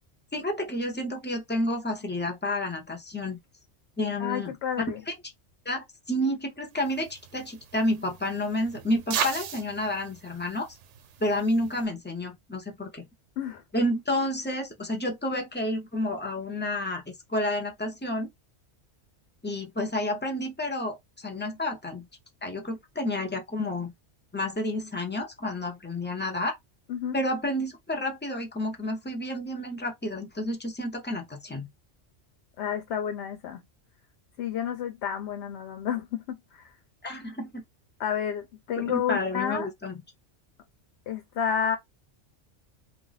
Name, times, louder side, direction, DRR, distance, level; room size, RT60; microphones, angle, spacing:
voice 1, 0.3-3.4 4.0-4.5 5.1-5.2 5.7-10.8 11.2-13.1 13.7-18.3 19.4-22.1 22.4-23.9 24.3-26.6 27.1-31.7 37.0-37.6 38.8-39.9, left 1 dB, 15° left, 0.4 m, -30 dB
voice 2, 4.2-5.0 13.4-13.6 26.9-27.2 32.6-33.6 34.4-36.7 38.0-39.7 41.1-41.8, left 8 dB, 70° left, 0.8 m, -30 dB
sound 1, 6.8-11.9, right 7 dB, 80° right, 0.9 m, -37 dB
2.3 x 2.1 x 3.8 m
omnidirectional pair, 1.2 m